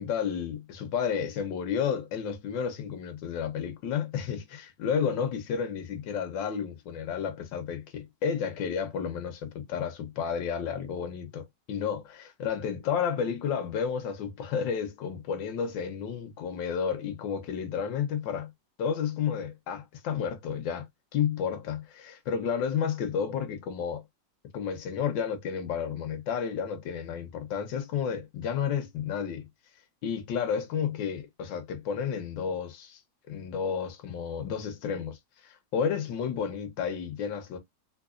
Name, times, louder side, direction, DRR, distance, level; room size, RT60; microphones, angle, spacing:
voice 1, 0.0-18.5 18.8-24.0 24.5-29.5 30.0-33.0 33.3-37.6, left 7 dB, 85° left, 1.6 m, -31 dB
3.9 x 3.0 x 2.4 m
omnidirectional pair, 2.0 m